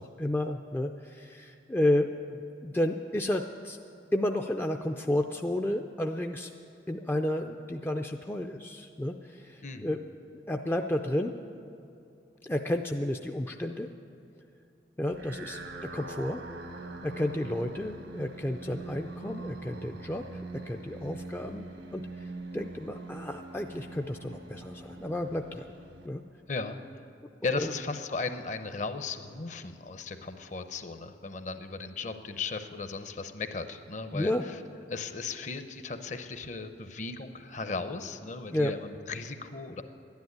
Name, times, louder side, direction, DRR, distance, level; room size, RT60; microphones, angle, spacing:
voice 1, 0.0-3.8 4.1-6.5 6.9-10.0 10.5-11.3 12.4-13.9 15.0-16.4 17.0-25.7 26.0-26.2 27.5-27.7 34.1-34.4 38.5-38.7, left 1 dB, 10° left, 3 dB, 0.4 m, -32 dB
sound 1, 15.1-26.6, right 3 dB, 80° right, 1.1 m, -43 dB
voice 2, 27.4-34.6 34.9-39.8, left 4 dB, 40° left, 9 dB, 0.7 m, -36 dB
12.0 x 10.5 x 9.6 m, 2.7 s
head